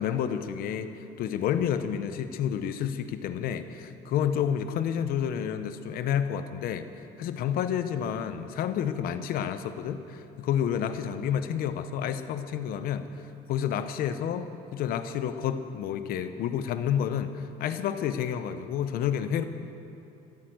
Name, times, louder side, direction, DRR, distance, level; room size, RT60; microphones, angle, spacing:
voice 1, 0.0-6.9 7.2-13.1 13.5-19.4, left 9 dB, 75° left, 10 dB, 0.9 m, -30 dB
14.5 x 9.8 x 7.9 m, 3.0 s
cardioid pair, 110°, 15 cm